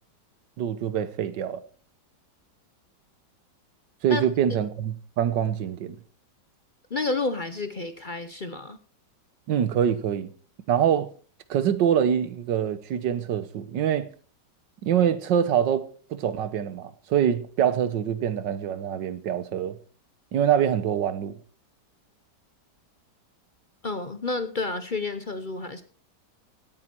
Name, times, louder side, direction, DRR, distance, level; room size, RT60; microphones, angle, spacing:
voice 1, 0.6-1.6 4.0-6.0 9.5-10.3 10.7-11.1 11.5-14.1 14.8-19.8 20.3-21.4, right 9 dB, 90° right, 1.6 m, -25 dB
voice 2, 6.9-8.8 23.8-25.8, left 3 dB, 40° left, 0.7 m, -30 dB
17.0 x 9.9 x 4.5 m
omnidirectional pair, 1.9 m